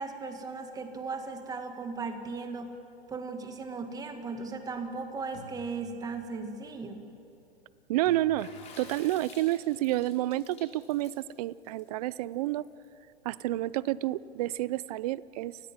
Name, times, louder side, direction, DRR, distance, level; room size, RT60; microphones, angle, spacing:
voice 1, 0.0-2.8 3.1-7.1, right 4 dB, 10° right, 6 dB, 1.8 m, -37 dB
sound 1, 3.5-3.8 5.3-6.5 8.0-9.2, left 1 dB, 45° left, 5.1 m, -53 dB
voice 2, 7.9-8.5 8.8-12.6 13.2-15.6, right 15 dB, 35° right, 20 dB, 0.5 m, -29 dB
Water / Splash splatter, 8.4-12.9, left 5 dB, 20° left, 4.8 m, -52 dB
30.0 x 20.0 x 7.4 m, 2.9 s
hypercardioid pair, 145°, 33 cm